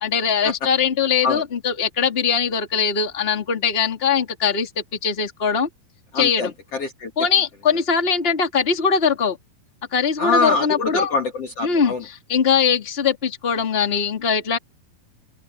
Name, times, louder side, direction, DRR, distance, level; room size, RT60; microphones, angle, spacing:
voice 1, 0.0-5.7 6.1-6.5 7.2-9.4 9.9-11.1 11.6-11.9 12.3-14.6, left 6 dB, 15° left, 2.6 m, -21 dB
voice 2, 6.1-7.1 10.2-12.0, left 3 dB, 45° left, 2.9 m, -24 dB
omnidirectional pair, 4.4 m